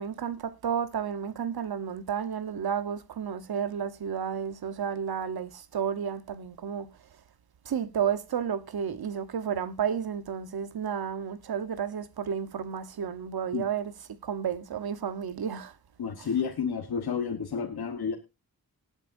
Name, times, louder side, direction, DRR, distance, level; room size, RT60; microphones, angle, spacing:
voice 1, 0.0-6.9 7.6-13.9 14.2-15.8 16.2-16.3, right 7 dB, 80° right, 1.1 m, -32 dB
voice 2, 16.0-18.2, left 6 dB, 85° left, 1.4 m, -30 dB
19.0 x 8.8 x 2.6 m
cardioid pair, 65°, 37 cm